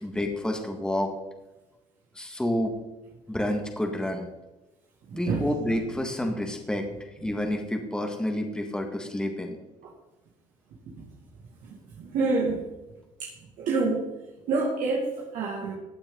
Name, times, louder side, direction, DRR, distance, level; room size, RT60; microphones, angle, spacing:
voice 1, 0.0-1.1 2.2-2.7 3.3-4.3 5.1-6.9 7.2-9.6, left 1 dB, 5° left, 3 dB, 1.9 m, -29 dB
voice 2, 12.1-12.6 13.2-13.3 13.6-14.0 14.5-15.7, right 3 dB, 75° right, -3 dB, 2.3 m, -26 dB
15.5 x 8.7 x 4.0 m, 1.1 s
cardioid pair, 95°, 14 cm